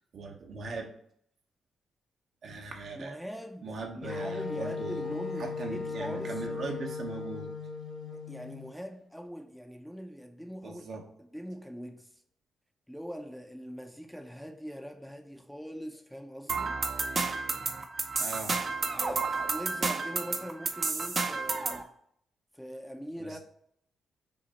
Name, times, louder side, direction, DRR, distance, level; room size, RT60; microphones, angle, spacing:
voice 1, 0.1-0.9 2.4-3.2 3.6-7.5 10.6-11.0 18.2-18.6 23.2-23.4, right 4 dB, 65° right, 0.9 m, -40 dB
voice 2, 2.9-6.5 8.1-12.2 12.9-16.8 18.9-21.9 22.5-23.4, equal, ahead, 0.6 m, -42 dB
Wind instrument woodwind instrument, 4.0-8.7, left 4 dB, 60° left, 0.8 m, -37 dB
sound 1, 16.5-21.8, right 4 dB, 45° right, 0.6 m, -31 dB
5.8 x 2.0 x 4.1 m
supercardioid pair, 60°, 0 cm